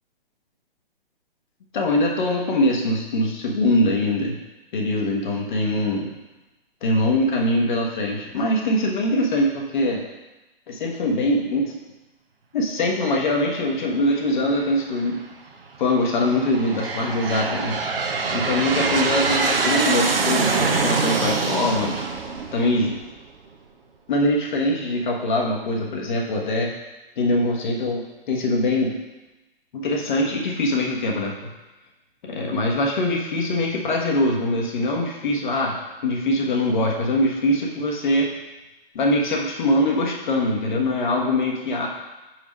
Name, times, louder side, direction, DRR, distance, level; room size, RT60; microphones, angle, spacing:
voice 1, 1.7-4.3 4.7-6.1 6.8-10.0 10.7-11.7 12.5-15.2 15.8-17.8 18.3-22.0 22.5-23.0 24.1-26.7 27.2-28.9 29.7-31.5 32.2-35.8 36.0-38.3 38.9-41.9, left 1 dB, 50° left, -1 dB, 1.4 m, -22 dB
Aircraft, 14.5-15.0 15.7-23.3, right 4 dB, 70° right, 0.9 m, -24 dB
4.8 x 4.7 x 5.2 m, 1.1 s
figure-of-eight pair, 120°, 30 cm